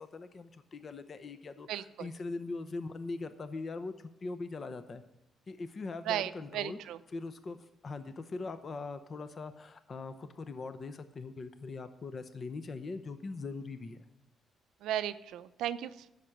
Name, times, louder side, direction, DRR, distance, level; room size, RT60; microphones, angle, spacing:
voice 1, 0.0-5.0 5.5-6.8 7.1-14.0, left 3 dB, 40° left, 11 dB, 0.7 m, -41 dB
voice 2, 1.7-2.1 6.1-7.0 14.8-16.1, right 11 dB, 85° right, 12 dB, 0.5 m, -35 dB
10.0 x 6.6 x 8.7 m, 0.93 s
cardioid pair, 90°, 0 cm